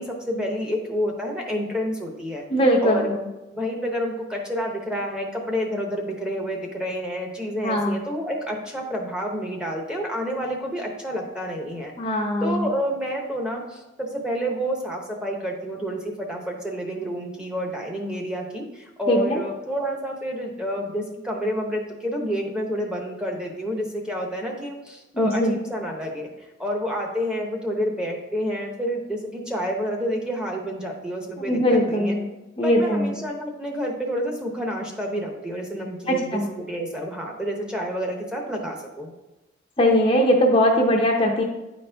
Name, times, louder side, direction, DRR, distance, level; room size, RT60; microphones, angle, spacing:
voice 1, 0.0-2.4 2.8-11.9 12.4-26.3 26.6-32.2 32.6-39.1, equal, 5° right, 1 dB, 0.8 m, -29 dB
voice 2, 2.5-3.1 7.6-8.0 12.0-12.7 19.1-19.4 25.1-25.6 31.4-32.3 32.6-33.1 36.1-36.5 39.8-41.4, equal, 25° left, 0 dB, 0.5 m, -20 dB
9.6 x 4.2 x 3.4 m, 1.0 s
head